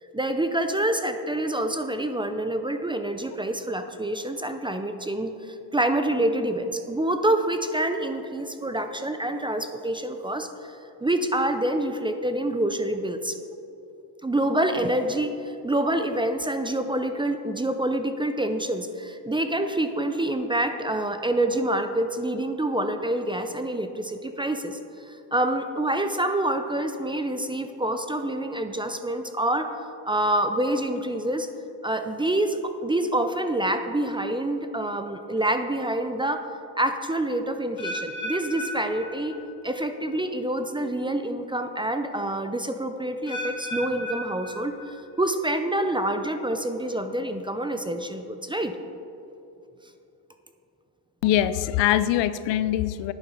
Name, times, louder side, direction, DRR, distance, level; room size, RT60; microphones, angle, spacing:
voice 1, 0.1-10.8 11.0-13.4 14.2-29.7 30.1-31.5 31.8-36.4 36.8-39.4 39.6-48.7, right 1 dB, 10° right, 8 dB, 0.5 m, -27 dB
sound 1, 37.8-39.8 40.1-40.5 41.1-41.2 43.3-45.2 45.5-46.0 46.6-46.7, equal, 40° left, 2.4 m, -35 dB
voice 2, 51.2-53.1, left 12 dB, 65° left, 14 dB, 0.6 m, -23 dB
10.5 x 8.9 x 5.5 m, 2.8 s
cardioid pair, 115°, 47 cm